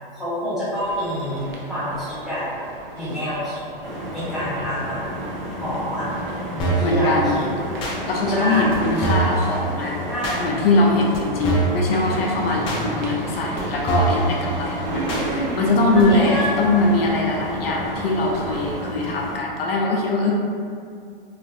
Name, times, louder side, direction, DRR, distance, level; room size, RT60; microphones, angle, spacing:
voice 1, 0.1-2.4 2.9-3.6 4.1-5.0 5.6-6.1 6.5-7.5 8.3-8.8 10.1-10.5 12.8-12.9 15.1-15.6 15.9-16.5, equal, ahead, -15 dB, 1.3 m, -27 dB
sound 1, 0.7-18.8, right 2 dB, 50° right, 0.6 m, -35 dB
sound 2, 3.8-19.4, equal, 25° right, 1.0 m, -32 dB
sound 3, 6.6-6.9 7.8-8.0 8.7-8.8 9.0-9.4 10.2-10.4 11.1-11.2 11.4-11.8 12.7-12.8 13.6-13.7 13.9-14.2 15.1-15.2 16.0-16.1, right 4 dB, 20° left, 0.4 m, -23 dB
voice 2, 6.8-7.4 8.1-10.0 10.4-20.3, left 2 dB, 75° left, -1 dB, 0.5 m, -22 dB
2.9 x 2.5 x 2.6 m, 2.3 s
hypercardioid pair, 135°, 30 cm